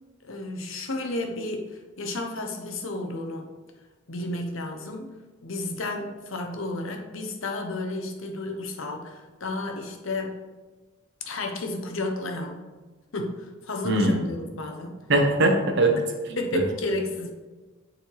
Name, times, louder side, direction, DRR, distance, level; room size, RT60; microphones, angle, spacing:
voice 1, 0.2-3.5 4.1-10.4 11.3-12.7 13.1-15.1 16.4-17.3, left 2 dB, 75° left, 3 dB, 0.9 m, -32 dB
voice 2, 13.8-14.2 15.1-15.9 16.5-16.6, right 2 dB, 60° right, 3 dB, 1.0 m, -21 dB
9.1 x 4.2 x 3.4 m, 1.3 s
head